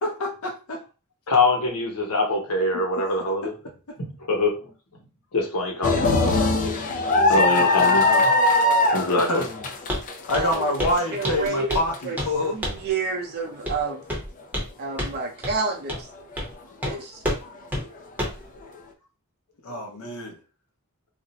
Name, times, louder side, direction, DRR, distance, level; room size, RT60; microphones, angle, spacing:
voice 1, 0.0-0.8 2.7-2.8 3.9-4.0 6.2-6.6 7.3-8.0 9.1-9.4 10.3-12.6 19.6-20.3, left 1 dB, 70° left, 0 dB, 0.7 m, -27 dB
voice 2, 1.3-3.5 4.2-4.7 5.3-6.0 7.3-8.3 8.9-9.4, left 2 dB, 90° left, 1 dB, 1.0 m, -23 dB
sound 1, 5.8-12.0 12.5-12.6 13.7-13.9, left 2 dB, 35° left, 0.4 m, -21 dB
Walk footsteps, 9.9-10.1 10.3-10.5 10.8-11.0 11.2-11.9 12.2-12.3 12.6-12.9 13.7-13.8 14.1-14.7 15.0-15.1 15.4-15.5 15.9-16.0 16.4-16.5 16.8-16.9 17.2-17.4 17.7-17.8 18.2-18.4, equal, 10° right, 0.8 m, -28 dB
voice 3, 10.3-14.0 14.8-16.1 16.8-17.2, right 4 dB, 45° right, 1 dB, 0.6 m, -30 dB
2.5 x 2.1 x 3.9 m, 0.33 s
head